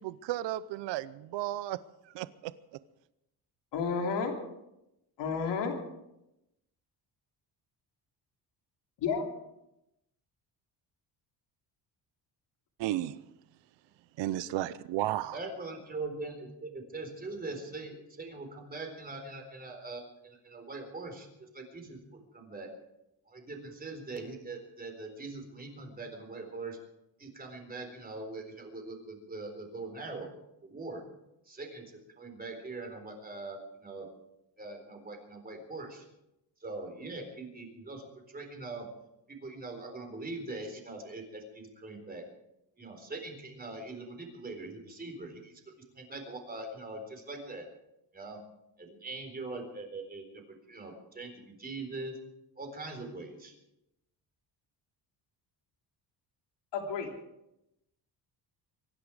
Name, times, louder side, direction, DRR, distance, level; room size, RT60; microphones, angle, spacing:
voice 1, 0.0-1.8 2.1-2.5 12.8-13.2 14.2-15.4, right 14 dB, 85° right, 16 dB, 0.7 m, -33 dB
voice 2, 3.7-4.4 5.2-5.8 9.0-9.3 56.7-57.1, left 5 dB, 80° left, 2 dB, 3.2 m, -31 dB
voice 3, 15.3-21.3 21.5-22.0 22.3-22.7 23.3-26.8 27.2-30.3 30.6-31.0 31.5-31.8 32.2-34.1 34.6-36.0 36.6-38.9 39.4-42.2 42.8-45.5 46.0-47.6 48.1-48.4 48.8-50.2 50.7-52.2 52.6-53.5, right 3 dB, 20° right, 3 dB, 4.1 m, -42 dB
24.5 x 11.5 x 4.9 m, 0.87 s
cardioid pair, 140°, 42 cm